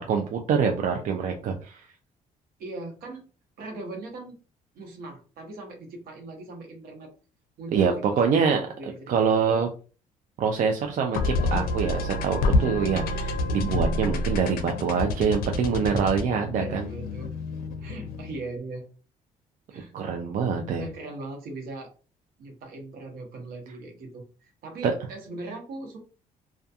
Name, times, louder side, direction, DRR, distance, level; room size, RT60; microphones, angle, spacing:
voice 1, 0.0-1.9 7.7-8.6 9.1-9.7 10.4-16.9 19.9-20.9 24.8-24.9, right 6 dB, 60° right, 3 dB, 0.4 m, -25 dB
voice 2, 2.6-3.2 3.6-4.4 4.7-7.1 7.6-9.7 16.6-17.3 17.8-18.8 19.7-19.9 20.8-21.9 22.4-26.0, right 2 dB, 80° right, 2 dB, 0.9 m, -39 dB
sound 1, 11.1-18.5, left 2 dB, 80° left, 0.4 m, -28 dB
2.6 x 2.3 x 2.3 m, 0.36 s
cardioid pair, 90°, 15 cm